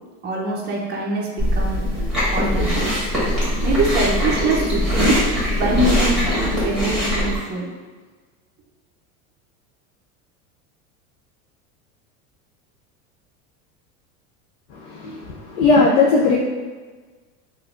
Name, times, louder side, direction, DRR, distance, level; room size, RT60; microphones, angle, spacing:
voice 1, 0.2-1.8 2.3-3.1 3.6-5.2 5.5-7.7, right 2 dB, 25° right, -3 dB, 0.6 m, -24 dB
Chewing mastication, 1.4-7.4, left 1 dB, ahead, 1.5 m, -21 dB
voice 2, 14.8-16.4, left 3 dB, 75° left, -4 dB, 0.6 m, -17 dB
3.3 x 2.6 x 2.4 m, 1.4 s
supercardioid pair, 105°, 41 cm